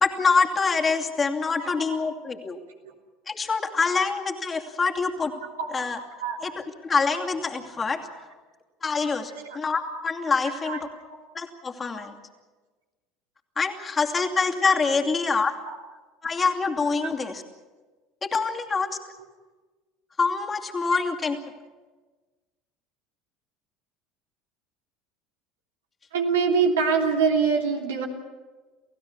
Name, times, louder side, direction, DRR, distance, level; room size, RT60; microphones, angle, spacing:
voice 1, 0.0-2.6 3.3-5.3 5.7-6.0 6.4-8.0 8.8-10.8 11.3-12.1 13.6-15.5 16.2-17.4 18.3-19.0 20.2-21.4, left 4 dB, 25° left, 2 dB, 2.6 m, -25 dB
voice 2, 10.4-10.8 15.0-15.1 15.6-15.8 17.0-17.1 21.2-21.3 26.1-28.1, right 5 dB, 80° right, 1 dB, 3.1 m, -25 dB
28.5 x 16.0 x 7.1 m, 1.3 s
hypercardioid pair, 70°, 0 cm